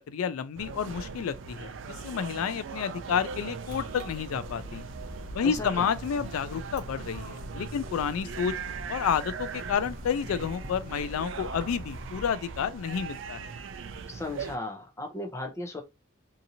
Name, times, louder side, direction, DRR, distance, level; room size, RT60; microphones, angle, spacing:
voice 1, 0.1-1.7 2.0-4.8 5.3-8.5 8.9-13.5, left 7 dB, 85° left, 0.3 m, -30 dB
sound 1, 0.6-14.6, right 5 dB, 60° right, 0.4 m, -40 dB
sound 2, 3.7-12.3, equal, 40° right, 0.9 m, -44 dB
voice 2, 5.4-5.9 14.1-15.8, left 2 dB, 15° left, 0.6 m, -36 dB
2.8 x 2.5 x 2.7 m
head